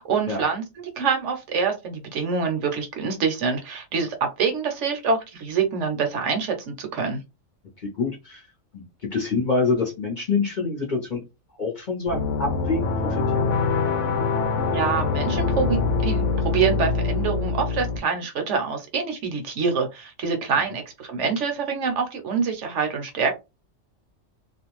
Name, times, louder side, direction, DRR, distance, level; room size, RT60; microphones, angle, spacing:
voice 1, 0.0-7.2 14.7-23.4, right 5 dB, 65° right, 4 dB, 0.9 m, -26 dB
voice 2, 7.8-8.5 8.7-11.2 11.6-13.5, left 4 dB, 45° left, -1 dB, 0.8 m, -26 dB
sound 1, 12.1-18.0, left 4 dB, 70° left, 0.9 m, -24 dB
2.5 x 2.2 x 2.9 m, 0.24 s
omnidirectional pair, 1.4 m